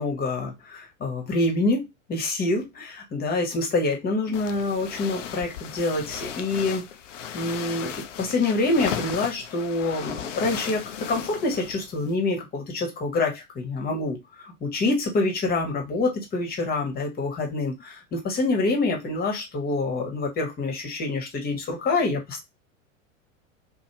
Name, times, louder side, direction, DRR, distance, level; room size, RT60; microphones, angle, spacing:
voice 1, 0.0-6.8 7.3-7.9 8.2-22.4, left 2 dB, 25° left, 1 dB, 1.1 m, -26 dB
sound 1, 4.3-12.1, left 8 dB, 65° left, 0.5 m, -36 dB
3.1 x 2.2 x 2.9 m, 0.20 s
figure-of-eight pair, 80°, 40 cm